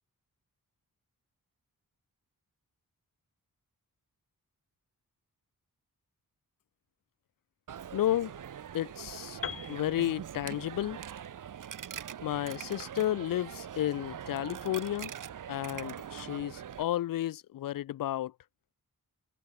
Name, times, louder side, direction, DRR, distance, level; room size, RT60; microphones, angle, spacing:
Coin (dropping), 7.7-16.8, right 9 dB, 60° right, 0.9 m, -43 dB
voice 1, 7.9-8.3 8.7-9.4 9.7-11.0 12.2-15.1 15.5-18.3, left 13 dB, 70° left, 0.5 m, -32 dB
Piano, 9.4-13.3, left 6 dB, 40° left, 0.8 m, -45 dB
wide cardioid pair, 135°, 35 cm